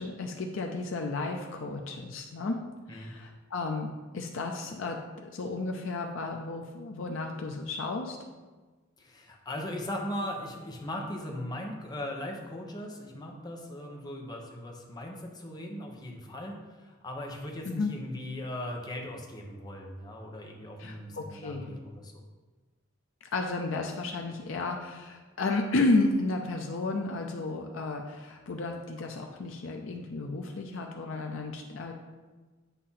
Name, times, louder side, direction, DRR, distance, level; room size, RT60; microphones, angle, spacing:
voice 1, 0.0-2.6 2.9-8.2 17.6-17.9 20.8-21.8 23.3-31.9, left 3 dB, 80° left, 2 dB, 0.6 m, -32 dB
voice 2, 9.0-22.2, left 1 dB, 20° left, 0 dB, 0.9 m, -39 dB
8.2 x 2.8 x 5.6 m, 1.3 s
head